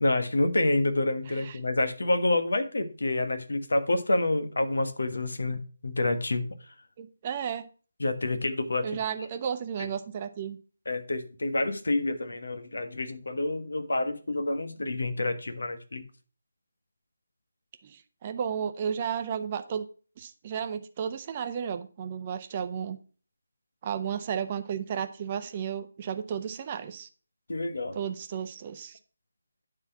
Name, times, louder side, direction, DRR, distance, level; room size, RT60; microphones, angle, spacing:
voice 1, 0.0-6.5 8.0-9.0 9.8-9.9 10.8-16.0 27.5-28.0, left 2 dB, 70° left, 1.3 m, -28 dB
voice 2, 7.0-7.6 8.8-10.6 17.8-19.9 20.2-23.0 23.8-27.1 27.9-29.0, right 8 dB, 30° right, 0.9 m, -33 dB
9.5 x 4.0 x 5.9 m
figure-of-eight pair, 155°, 0 cm